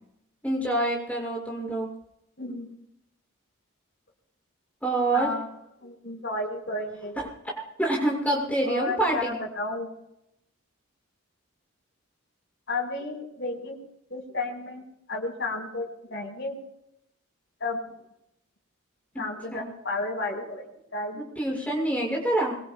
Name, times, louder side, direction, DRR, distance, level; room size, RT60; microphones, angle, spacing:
voice 1, 0.4-1.9 4.8-5.3 7.2-7.3 7.8-9.3 19.1-19.2 19.5-19.7 21.2-22.5, right 1 dB, 5° left, -3 dB, 6.4 m, -26 dB
voice 2, 2.4-2.7 5.1-5.5 5.8-7.3 8.6-9.9 12.7-13.8 14.1-14.8 15.1-16.6 17.6-17.8 19.2-20.7 20.9-21.2, left 2 dB, 60° left, 0 dB, 5.6 m, -32 dB
25.0 x 24.0 x 2.4 m, 0.80 s
head